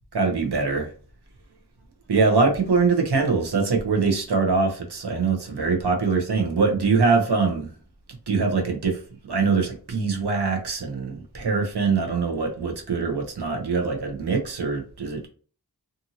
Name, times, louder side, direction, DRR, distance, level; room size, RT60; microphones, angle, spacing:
voice 1, 0.1-0.9 2.1-7.7 8.3-9.0 9.3-15.3, right 4 dB, 85° right, 2 dB, 0.8 m, -23 dB
2.7 x 2.6 x 2.7 m, 0.40 s
wide cardioid pair, 50°, 39 cm